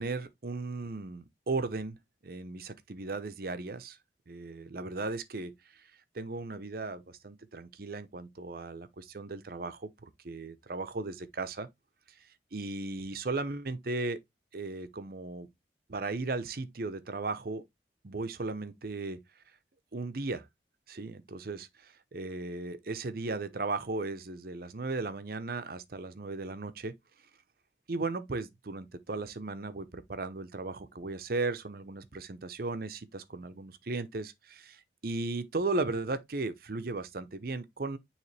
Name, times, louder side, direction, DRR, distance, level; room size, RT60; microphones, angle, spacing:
voice 1, 0.0-2.0 2.2-4.0 4.3-5.8 6.1-11.7 12.5-14.2 14.5-15.5 15.9-17.6 18.0-19.2 19.9-20.5 20.9-26.9 27.9-38.0, right 3 dB, 55° right, 0.7 m, -36 dB
9.5 x 3.2 x 3.2 m
head